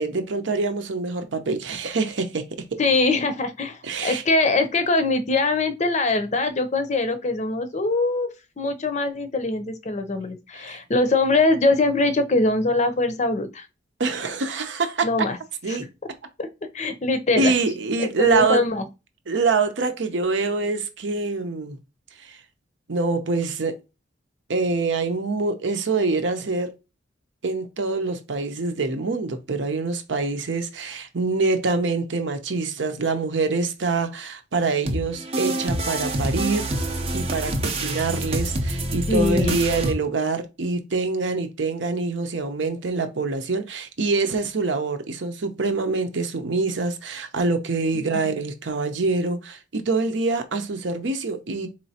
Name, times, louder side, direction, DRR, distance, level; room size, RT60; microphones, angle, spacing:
voice 1, 0.0-2.4 3.8-4.2 10.5-10.8 14.0-15.1 15.6-15.9 17.4-18.6 19.3-21.8 22.2-22.4 22.9-23.8 24.5-26.7 27.4-36.7 37.1-51.7, right 3 dB, 75° right, 0.7 m, -25 dB
voice 2, 2.8-8.3 8.6-13.7 15.0-15.4 15.7-15.8 16.4-16.5 16.7-17.6 18.2-18.9 39.1-39.6, left 3 dB, 35° left, 0.6 m, -22 dB
sound 1, 34.9-39.9, right 1 dB, 30° right, 0.6 m, -26 dB
4.3 x 3.1 x 2.8 m
head